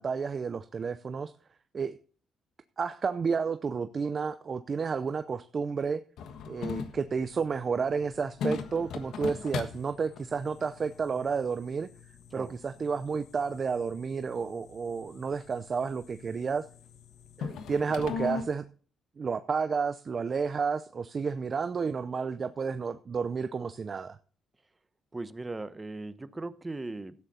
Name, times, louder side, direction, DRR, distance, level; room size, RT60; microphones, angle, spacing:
voice 1, 0.0-1.3 1.7-1.9 2.8-6.0 6.5-11.9 12.3-16.7 17.4-18.6 19.2-24.2, right 5 dB, 40° right, 11 dB, 0.6 m, -31 dB
sound 1, 6.2-18.4, left 5 dB, 75° left, 1.3 m, -40 dB
voice 2, 25.1-27.1, right 2 dB, 20° right, 14 dB, 0.9 m, -38 dB
13.0 x 9.2 x 4.2 m, 0.42 s
cardioid pair, 90°, 0 cm